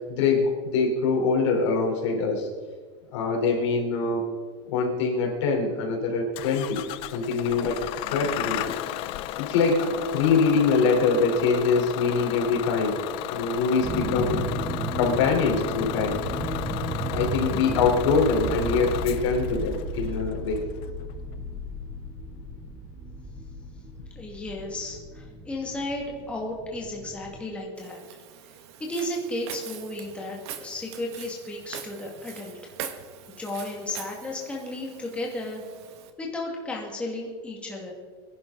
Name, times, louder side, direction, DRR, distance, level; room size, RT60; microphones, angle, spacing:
voice 1, 0.1-2.5 3.1-4.2 4.7-6.9 7.1-7.8 8.1-8.7 9.4-13.0 13.3-14.4 14.9-16.2 17.1-20.6, left 4 dB, 80° left, 0 dB, 3.9 m, -24 dB
Bus / Engine starting, 6.4-22.6, left 13 dB, 35° left, 0.5 m, -34 dB
sound 1, 13.8-27.4, right 1 dB, 20° right, 3.4 m, -34 dB
voice 2, 24.1-28.0 28.8-32.7 33.4-35.6 36.2-37.9, left 1 dB, 10° left, -2 dB, 2.1 m, -34 dB
Walk footsteps, 27.8-36.1, right 9 dB, 65° right, 1.4 m, -43 dB
24.0 x 11.0 x 4.0 m, 1.5 s
supercardioid pair, 170°, 15 cm